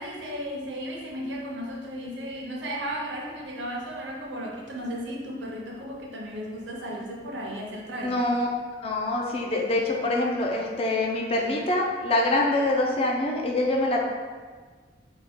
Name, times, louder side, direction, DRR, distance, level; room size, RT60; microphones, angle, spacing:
voice 1, 0.0-8.4, equal, 80° right, -1 dB, 0.6 m, -35 dB
voice 2, 8.0-8.5 8.8-14.0, left 2 dB, 35° left, -1 dB, 0.4 m, -25 dB
3.4 x 2.2 x 3.5 m, 1.5 s
head